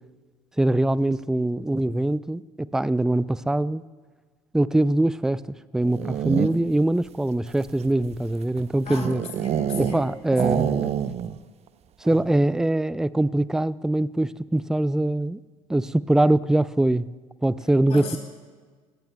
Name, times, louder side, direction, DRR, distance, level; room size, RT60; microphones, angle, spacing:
voice 1, 0.6-3.8 4.5-5.4 5.7-9.2 9.8-10.9 12.0-15.4 15.7-17.1 17.4-18.2, right 1 dB, 5° right, 19 dB, 0.3 m, -23 dB
sound 1, 5.8-6.8 7.5-10.0 10.3-11.4 11.7-11.8 12.1-12.4, right 10 dB, 35° right, 0.6 m, -27 dB
voice 2, 8.9-10.0 10.4-10.6 17.9-18.2, left 5 dB, 35° left, 2 dB, 3.9 m, -36 dB
21.5 x 17.5 x 2.3 m, 1.5 s
figure-of-eight pair, 65°, 17 cm